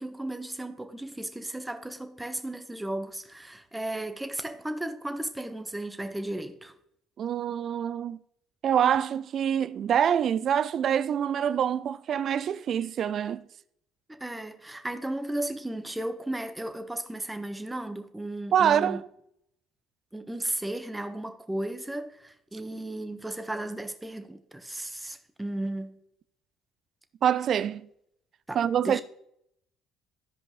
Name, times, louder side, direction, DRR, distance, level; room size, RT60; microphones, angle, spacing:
voice 1, 0.0-6.7 14.1-19.0 20.1-26.0 28.5-29.0, right 1 dB, 10° right, 1.1 m, -35 dB
voice 2, 7.2-8.2 8.6-13.4 18.5-19.0 27.2-27.9 28.5-29.0, right 9 dB, 55° right, 0.4 m, -25 dB
14.0 x 5.2 x 3.1 m
hypercardioid pair, 60°, 0 cm